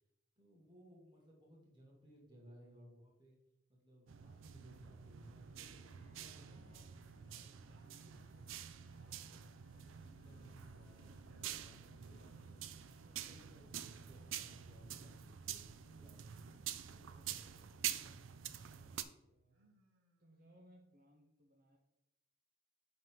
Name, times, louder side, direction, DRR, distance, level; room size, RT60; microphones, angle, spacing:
voice 1, 0.4-3.4 3.7-6.9 7.2-16.6 16.9-18.2, equal, 20° right, -3 dB, 2.0 m, -63 dB
sound 1, 4.1-19.0, right 10 dB, 70° right, 0.4 m, -48 dB
sound 2, 5.0-5.8 6.2-8.2 8.6-9.6 10.2-10.8 11.1-11.8 12.7-13.5 14.3-15.2 16.0-16.7 17.3-18.0 18.5-19.1 19.5-20.6, right 2 dB, 85° right, 1.1 m, -73 dB
sound 3, 5.5-14.7, left 1 dB, 90° left, 0.9 m, -67 dB
voice 2, 18.7-19.8 20.2-21.8, equal, 45° right, 0 dB, 0.8 m, -66 dB
8.8 x 4.0 x 3.9 m, 0.91 s
head